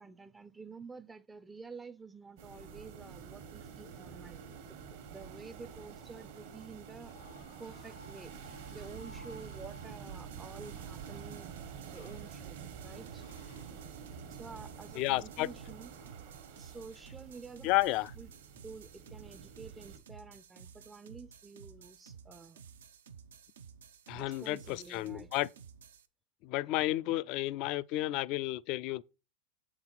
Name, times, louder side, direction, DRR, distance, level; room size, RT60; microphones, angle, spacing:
voice 1, 0.0-4.8 5.1-7.1 7.6-8.4 8.7-11.6 11.9-13.3 14.3-15.9 16.6-18.3 18.6-22.6 24.1-25.3 28.3-28.5, right 4 dB, 15° right, 0.4 m, -50 dB
sound 1, 2.4-20.0, right 7 dB, 70° right, 1.2 m, -48 dB
sound 2, 7.0-17.9, left 2 dB, 90° left, 2.0 m, -60 dB
sound 3, 10.1-26.1, right 7 dB, 85° right, 0.5 m, -54 dB
voice 2, 15.0-15.5 17.6-18.1 24.1-25.5 26.4-29.0, left 17 dB, 55° left, 0.3 m, -32 dB
7.2 x 4.0 x 4.4 m
hypercardioid pair, 105°, 0 cm